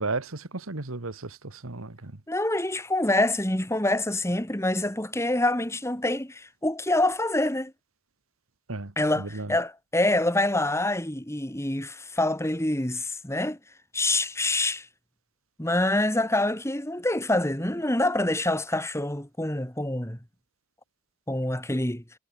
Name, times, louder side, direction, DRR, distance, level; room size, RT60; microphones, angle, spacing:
voice 1, 0.0-2.2 8.7-9.6, right 3 dB, 80° right, 1.6 m, -34 dB
voice 2, 2.3-7.7 9.0-13.6 13.9-14.9 15.6-20.2 21.3-22.0, left 1 dB, 15° left, 2.8 m, -26 dB
head